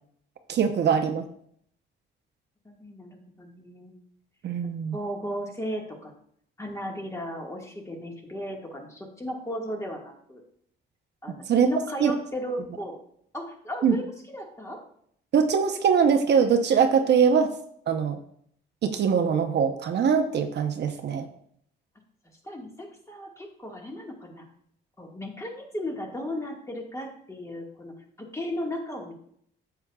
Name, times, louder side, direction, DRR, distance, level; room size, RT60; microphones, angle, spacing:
voice 1, 0.5-1.2 4.4-5.0 11.5-11.7 12.0-12.1 13.8-14.0 15.3-17.5 17.9-18.2 18.8-21.3, right 6 dB, 60° right, 6 dB, 0.7 m, -22 dB
voice 2, 2.6-3.9 4.9-6.1 6.6-10.4 11.2-13.0 13.3-14.8 22.4-24.5 25.0-29.1, equal, 15° left, 0 dB, 1.6 m, -36 dB
8.6 x 6.9 x 2.3 m, 0.66 s
cardioid pair, 90°, 20 cm